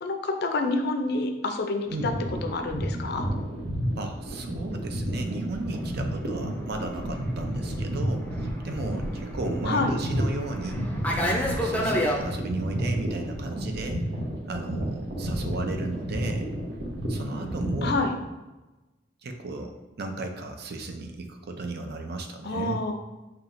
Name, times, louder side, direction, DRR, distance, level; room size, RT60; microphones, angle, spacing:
voice 1, 0.0-2.1 2.4-3.3 9.7-10.0 17.8-18.1 22.4-23.0, left 3 dB, 60° left, 5 dB, 0.5 m, -28 dB
sound 1, 1.9-18.0, equal, 80° right, 1.0 m, -31 dB
voice 2, 4.0-10.8 11.2-14.0 14.5-16.5 17.1-18.0 19.2-22.8, right 2 dB, 60° right, 5 dB, 0.5 m, -34 dB
Fixed-wing aircraft airplane, 5.7-12.2, equal, 10° left, 0.5 m, -31 dB
5.7 x 2.8 x 2.5 m, 1.1 s
head